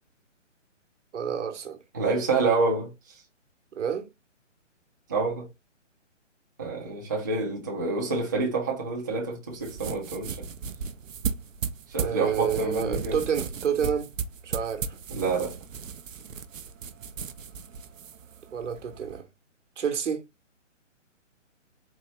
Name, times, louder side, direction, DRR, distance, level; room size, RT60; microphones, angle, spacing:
voice 1, 1.1-1.8 3.7-4.1 12.0-14.1 14.4-15.0 18.5-19.2 19.8-20.2, right 7 dB, 70° right, 1.1 m, -29 dB
voice 2, 1.9-3.2 5.1-5.5 6.6-10.5 11.9-13.2 15.1-15.5, right 3 dB, 15° right, 0.4 m, -28 dB
sound 1, 9.5-19.2, right 6 dB, 85° right, 0.6 m, -36 dB
4.1 x 2.6 x 3.1 m
hypercardioid pair, 150°, 37 cm